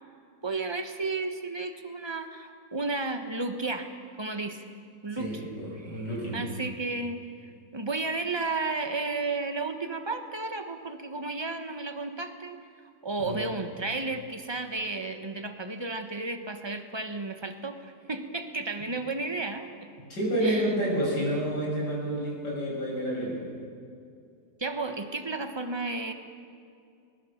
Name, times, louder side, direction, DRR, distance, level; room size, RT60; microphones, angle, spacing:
voice 1, 0.4-3.9 4.2-4.6 5.0-5.4 5.8-6.1 6.3-7.2 7.7-12.6 13.0-19.7 20.4-20.8 24.6-26.1, right 3 dB, 15° right, 7 dB, 1.2 m, -33 dB
voice 2, 5.2-6.4 13.2-13.4 20.1-23.4, right 1 dB, 85° left, -4 dB, 7.4 m, -29 dB
20.5 x 19.5 x 7.3 m, 2.5 s
omnidirectional pair, 1.8 m